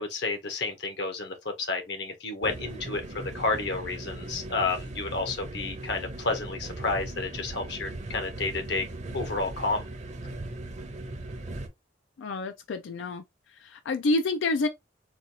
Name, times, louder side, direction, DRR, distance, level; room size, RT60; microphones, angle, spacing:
voice 1, 0.0-8.9 9.1-9.9, left 3 dB, 65° left, 0.9 m, -31 dB
sound 1, 2.4-11.7, right 2 dB, 40° right, 0.6 m, -38 dB
voice 2, 12.2-13.2 13.6-14.7, left 2 dB, 90° left, 0.4 m, -28 dB
4.2 x 2.4 x 2.7 m
head